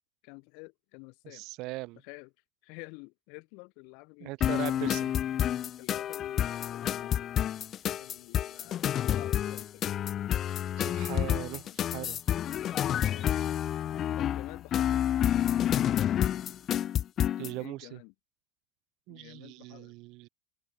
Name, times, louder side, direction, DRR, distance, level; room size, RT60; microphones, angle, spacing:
voice 1, 0.2-1.4 1.9-2.3 2.6-5.0 5.8-7.3 8.0-10.0 11.6-11.8 13.0-13.6 14.2-15.3 17.6-18.1 19.1-19.9, left 35 dB, 75° left, 3.3 m, -50 dB
voice 2, 1.3-2.0 4.2-5.2 10.8-11.6 11.9-12.2 17.4-18.0 19.1-20.3, right 22 dB, 65° right, 0.6 m, -39 dB
sound 1, 4.4-17.5, left 10 dB, 45° left, 0.3 m, -29 dB
open air
supercardioid pair, 115°, 0 cm